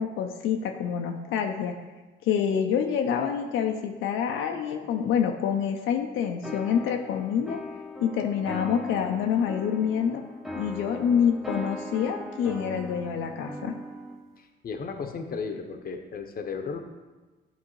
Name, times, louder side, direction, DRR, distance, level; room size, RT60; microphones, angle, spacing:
voice 1, 0.0-1.7 2.2-7.6 8.0-10.2 10.6-13.7, left 8 dB, 85° left, 3 dB, 0.5 m, -27 dB
sound 1, 6.4-14.2, equal, ahead, 0.7 m, -39 dB
voice 2, 14.4-16.8, left 5 dB, 50° left, 6 dB, 0.7 m, -35 dB
9.7 x 3.7 x 3.0 m, 1.2 s
cardioid pair, 90°, 20 cm